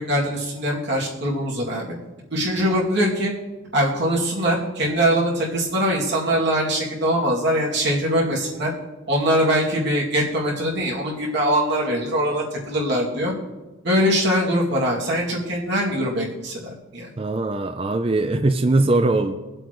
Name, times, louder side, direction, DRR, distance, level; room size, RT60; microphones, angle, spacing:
voice 1, 0.0-1.9 2.3-3.3 3.7-8.7 9.1-13.3 13.8-17.1, equal, 55° right, -4 dB, 2.4 m, -22 dB
voice 2, 17.2-19.3, right 2 dB, 25° right, 7 dB, 0.5 m, -20 dB
22.5 x 7.9 x 3.1 m, 1.1 s
head